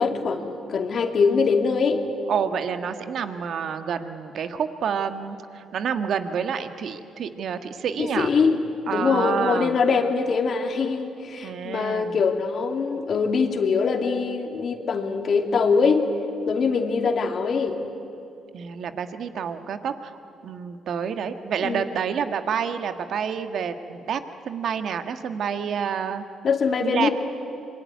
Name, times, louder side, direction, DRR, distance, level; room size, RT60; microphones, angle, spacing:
voice 1, 0.0-2.0 8.0-16.1 16.5-17.8 21.6-21.9 26.4-27.1, left 5 dB, 55° left, 5 dB, 2.6 m, -23 dB
voice 2, 2.3-8.3 8.9-9.8 11.4-12.2 18.5-20.1 20.4-24.2 24.4-26.2 26.8-27.1, right 7 dB, 65° right, 8 dB, 1.6 m, -28 dB
25.5 x 22.5 x 9.6 m, 2.7 s
cardioid pair, 90°, 0 cm